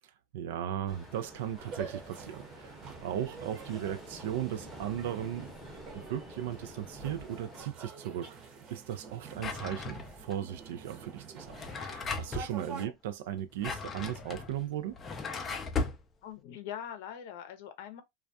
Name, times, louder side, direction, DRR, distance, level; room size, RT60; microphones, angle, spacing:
voice 1, 0.3-5.5 5.9-8.3 8.7-15.0, right 11 dB, 75° right, 0.3 m, -37 dB
Ocean, 0.9-7.6, equal, 5° right, 0.8 m, -49 dB
sound 1, 1.6-12.8, right 5 dB, 40° right, 0.8 m, -47 dB
Drawer open or close, 9.4-10.3 11.4-12.5 13.4-16.0, left 4 dB, 20° left, 0.4 m, -37 dB
voice 2, 16.2-18.0, left 9 dB, 65° left, 0.6 m, -43 dB
2.3 x 2.2 x 2.5 m
supercardioid pair, 145°, 0 cm